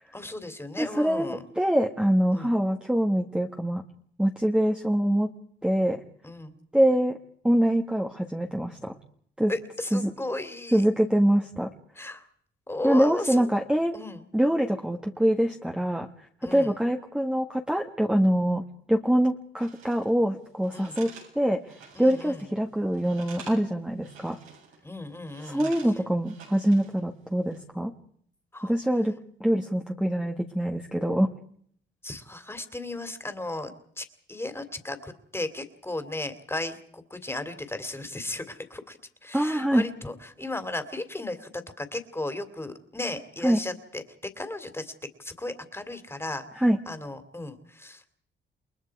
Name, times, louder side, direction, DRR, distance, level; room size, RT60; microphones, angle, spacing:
voice 1, 0.1-1.4 2.3-2.5 6.2-6.6 9.5-10.8 11.9-12.2 12.7-13.5 13.9-14.2 16.4-16.8 20.7-21.0 21.9-22.5 24.8-25.8 28.5-28.7 32.0-44.9 45.2-48.1, left 2 dB, 10° left, 9 dB, 2.8 m, -35 dB
voice 2, 0.8-3.8 4.2-5.3 5.6-6.0 6.7-7.2 7.4-9.0 9.4-9.5 9.9-10.1 10.7-11.7 12.8-14.0 14.3-16.1 16.4-18.6 18.9-21.6 22.0-24.4 25.4-27.9 28.6-31.3 39.3-39.8 43.4-43.6 46.6-46.8, equal, 5° right, 2 dB, 1.6 m, -24 dB
sound 1, 19.6-20.1 20.6-22.5 22.8-23.7 24.0-24.8 25.3-27.0 27.3-27.6, right 5 dB, 85° right, 8.0 m, -49 dB
29.5 x 21.5 x 4.8 m, 0.62 s
cardioid pair, 90°, 20 cm